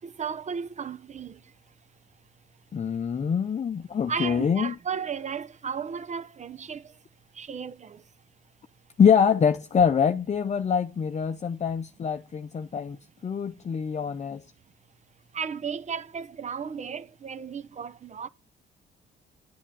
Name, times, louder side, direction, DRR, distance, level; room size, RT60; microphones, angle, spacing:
voice 1, 0.0-1.4 4.1-6.8 7.4-8.0 15.3-18.3, right 6 dB, 35° right, 0.8 m, -34 dB
voice 2, 2.7-4.7 9.0-13.0 13.2-14.4, left 7 dB, 35° left, 0.7 m, -24 dB
10.5 x 7.4 x 8.5 m
cardioid pair, 90°, 20 cm